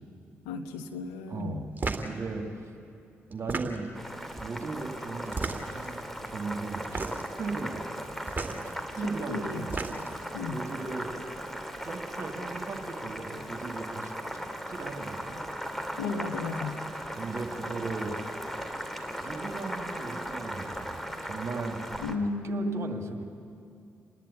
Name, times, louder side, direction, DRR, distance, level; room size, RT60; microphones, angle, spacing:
voice 1, 0.4-1.7 9.3-9.7 10.3-10.6 16.0-16.8 22.0-23.2, left 3 dB, 85° left, 7 dB, 1.1 m, -34 dB
voice 2, 1.3-1.7 2.0-2.7 3.3-7.1 7.4-8.1 8.6-9.7 10.5-11.1 11.8-14.4 14.7-15.4 17.1-18.2 19.2-21.8 22.2-23.2, right 4 dB, 55° right, 3 dB, 2.2 m, -37 dB
sound 1, 1.8-2.1 3.3-4.0 5.3-5.9 6.8-7.3 8.3-8.6 9.5-10.2, right 3 dB, 30° right, 2.1 m, -33 dB
Boiling, 3.9-22.2, equal, 5° left, 2.3 m, -38 dB
28.5 x 11.0 x 8.6 m, 2.5 s
hypercardioid pair, 45°, 6 cm